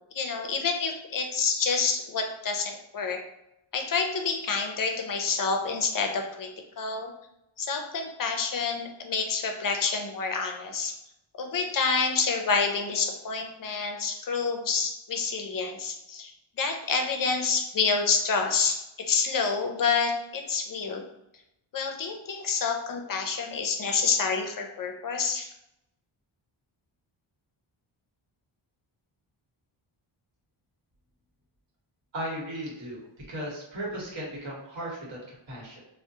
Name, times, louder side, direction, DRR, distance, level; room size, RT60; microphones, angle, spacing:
voice 1, 0.1-3.2 3.7-6.5 6.8-7.1 7.6-10.9 11.4-21.0 21.7-25.5, left 5 dB, 45° left, 4 dB, 0.5 m, -28 dB
voice 2, 32.1-35.8, right 1 dB, 60° right, -3 dB, 1.1 m, -36 dB
3.5 x 2.1 x 2.7 m, 0.84 s
wide cardioid pair, 145°, 49 cm